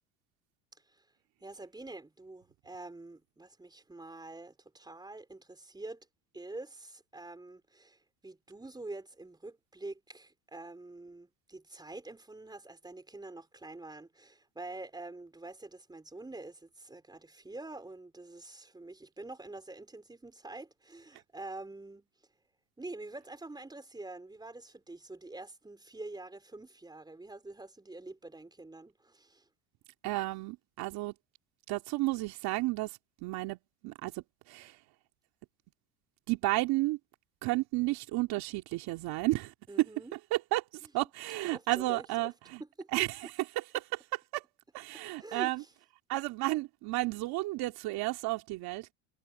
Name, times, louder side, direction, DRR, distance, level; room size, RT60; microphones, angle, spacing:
voice 1, 1.4-6.1 6.3-22.1 22.8-29.5 39.7-40.1 40.8-40.9 41.5-42.3 42.6-42.9 45.2-45.7, right 2 dB, 10° right, 4.3 m, -46 dB
voice 2, 30.0-31.1 31.7-33.6 33.8-34.8 36.3-37.0 37.4-39.5 40.3-40.6 40.9-42.6 42.9-43.3 43.6-43.7 44.3-44.4 44.7-45.6 46.1-48.9, right 20 dB, 60° right, 2.7 m, -32 dB
supercardioid pair, 100°, 42 cm